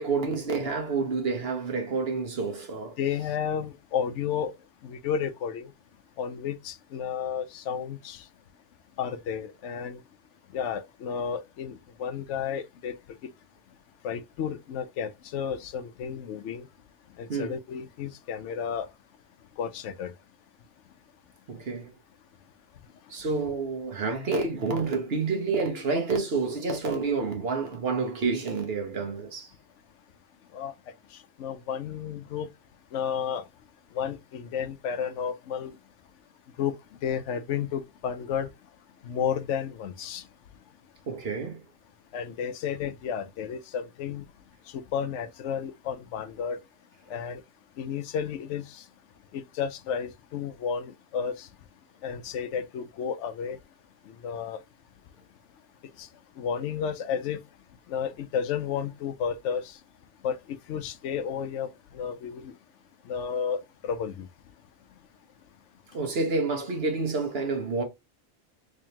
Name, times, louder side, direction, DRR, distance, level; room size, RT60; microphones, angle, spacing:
voice 1, 0.0-2.9 17.3-17.5 21.5-21.9 23.1-29.5 41.1-41.6 65.9-67.8, right 4 dB, 55° right, 1.3 m, -29 dB
voice 2, 3.0-4.5 4.8-5.7 6.2-8.2 9.0-10.0 10.5-12.9 14.0-16.7 17.2-18.9 19.6-20.1 30.5-30.7 31.4-32.5 32.9-33.4 33.9-35.7 36.6-36.7 37.0-38.5 39.0-40.2 42.1-44.2 44.9-46.6 47.1-47.4 47.8-48.8 49.3-51.5 52.0-53.6 54.2-54.6 56.0-56.1 56.4-57.4 57.9-59.8 60.2-60.4 60.7-61.7 61.9-62.5 63.1-64.3, left 7 dB, 80° left, 0.9 m, -32 dB
3.7 x 3.4 x 2.8 m
omnidirectional pair, 1.2 m